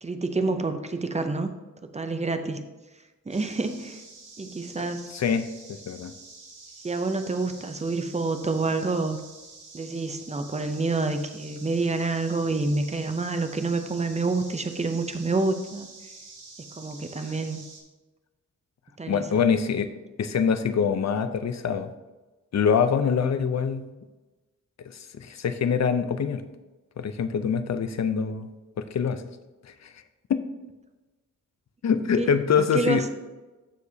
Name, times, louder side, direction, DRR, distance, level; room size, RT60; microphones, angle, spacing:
voice 1, 0.0-1.5 1.9-2.6 3.3-4.0 4.4-5.1 6.8-9.2 9.7-15.9 16.8-17.6 19.0-19.4 32.2-32.3 32.6-33.0, right 3 dB, 20° right, 8 dB, 0.6 m, -28 dB
sound 1, 3.3-17.8, right 3 dB, 80° right, 2.0 m, -47 dB
voice 2, 5.1-6.1 19.1-19.9 20.2-21.9 22.5-23.9 25.1-26.4 27.0-28.5 28.8-29.2 29.8-29.9 30.3-30.4 31.8-33.1, left 6 dB, 60° left, 10 dB, 0.6 m, -24 dB
13.5 x 4.8 x 2.8 m, 1.2 s
wide cardioid pair, 140°, 30 cm